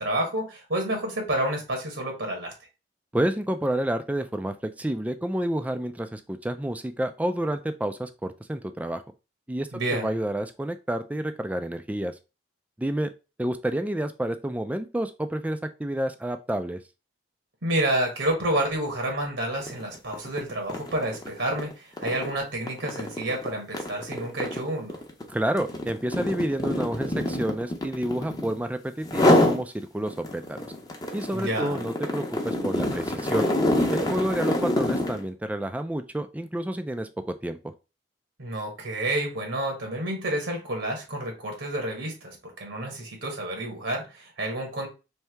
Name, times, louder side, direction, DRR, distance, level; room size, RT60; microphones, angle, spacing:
voice 1, 0.0-2.5 9.7-10.2 17.6-25.0 31.3-31.8 38.4-44.9, right 1 dB, 75° right, 2 dB, 1.3 m, -29 dB
voice 2, 3.1-9.0 9.5-12.1 12.8-13.1 13.4-16.8 25.3-30.7 31.1-33.5 33.9-37.6, right 1 dB, 10° right, 9 dB, 0.3 m, -29 dB
sound 1, 19.6-19.8 20.1-28.6 29.0-29.6 30.1-35.2, left 1 dB, 20° left, 0.7 m, -26 dB
3.4 x 2.7 x 4.4 m, 0.30 s
head